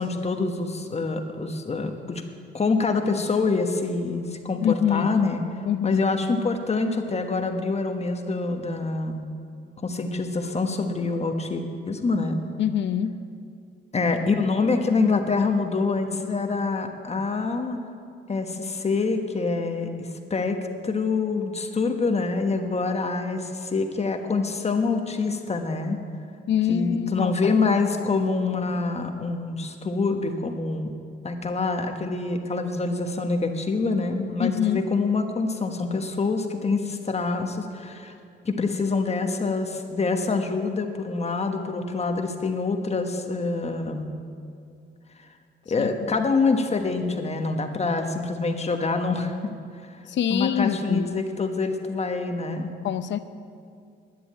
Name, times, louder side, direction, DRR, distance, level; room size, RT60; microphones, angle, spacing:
voice 1, 0.0-2.2 2.5-5.4 5.8-9.3 9.8-12.4 13.9-17.8 18.3-20.6 20.8-26.0 26.7-30.9 31.2-38.1 38.4-44.1 45.7-49.5 49.8-50.0 50.3-52.7, left 3 dB, 35° left, 5 dB, 1.3 m, -26 dB
voice 2, 4.6-5.2 5.7-6.0 12.6-13.2 26.5-27.8 34.4-34.8 45.8-45.9 50.1-51.2 52.8-53.2, left 9 dB, 65° left, 12 dB, 0.7 m, -25 dB
11.5 x 9.7 x 8.7 m, 2.4 s
cardioid pair, 90°, 20 cm